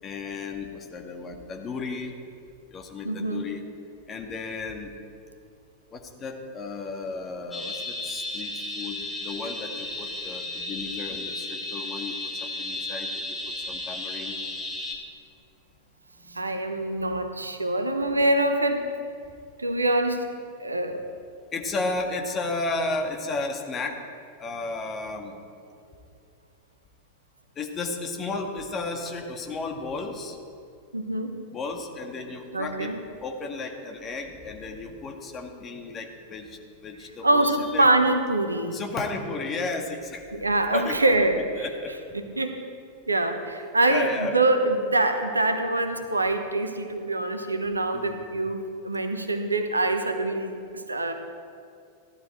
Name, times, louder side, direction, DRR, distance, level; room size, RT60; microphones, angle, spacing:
voice 1, 0.0-2.2 2.7-3.7 4.1-4.9 5.9-14.4 16.2-16.6 17.0-17.1 21.5-24.0 24.4-25.3 27.6-30.4 31.5-32.9 33.2-37.9 38.7-40.3 40.7-41.0 41.6-41.9 43.9-44.4 47.9-48.3, left 3 dB, 25° left, 2 dB, 1.8 m, -33 dB
voice 2, 3.0-3.4 16.3-18.9 19.6-20.3 20.6-21.0 30.9-31.3 32.5-33.0 37.2-38.8 40.3-41.6 42.1-42.6 43.1-51.1, right 2 dB, 80° right, 7 dB, 1.1 m, -25 dB
sound 1, 7.5-14.9, left 2 dB, 5° left, 2.6 m, -34 dB
16.0 x 12.0 x 4.4 m, 2.3 s
figure-of-eight pair, 90°, 0 cm